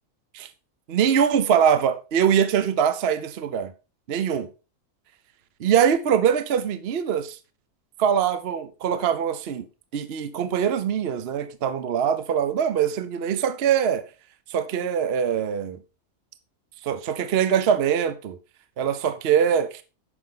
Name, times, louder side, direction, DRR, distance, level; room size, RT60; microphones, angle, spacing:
voice 1, 0.9-3.7 4.1-4.5 5.6-7.4 8.0-9.6 9.9-14.0 14.5-15.8 16.8-18.4 18.8-19.8, right 8 dB, 55° right, 0.9 m, -23 dB
9.8 x 6.3 x 3.7 m
omnidirectional pair, 1.4 m